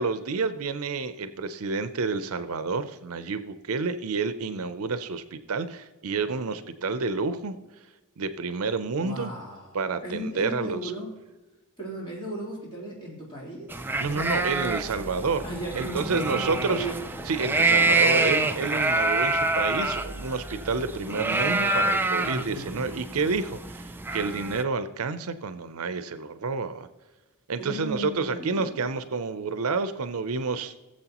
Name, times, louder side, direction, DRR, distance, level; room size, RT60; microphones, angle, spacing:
voice 1, 0.0-7.6 8.2-9.3 9.7-10.9 14.0-15.4 15.8-16.9 17.3-26.9 27.5-30.7, right 4 dB, 75° right, 11 dB, 0.6 m, -29 dB
voice 2, 8.9-11.1 11.8-13.8 15.4-17.0 22.2-22.7 27.6-28.9, right 1 dB, 25° left, -5 dB, 3.3 m, -36 dB
sound 1, 13.7-24.6, right 2 dB, 10° right, 0.4 m, -26 dB
17.5 x 7.6 x 3.0 m, 1.1 s
head